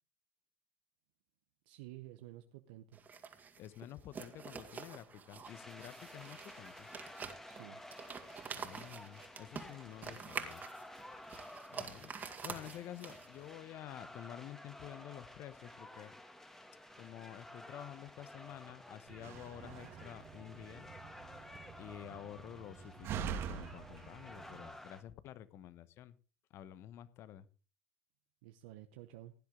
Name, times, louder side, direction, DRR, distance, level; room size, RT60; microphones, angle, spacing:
voice 1, 1.7-3.0 7.4-7.8 28.4-29.3, right 15 dB, 75° right, 8 dB, 0.8 m, -52 dB
sound 1, 2.9-13.5, right 6 dB, 35° right, 2.4 m, -47 dB
voice 2, 3.6-6.9 8.5-10.6 11.7-12.1 12.4-16.1 17.0-20.9 21.8-26.2 26.5-27.5, left 12 dB, 55° left, 16 dB, 1.1 m, -50 dB
sound 2, 5.4-25.0, left 1 dB, 10° left, 2.2 m, -53 dB
Slam, 19.1-24.7, right 8 dB, 55° right, 1.4 m, -45 dB
16.5 x 10.5 x 3.8 m, 0.35 s
hypercardioid pair, 75°, 5 cm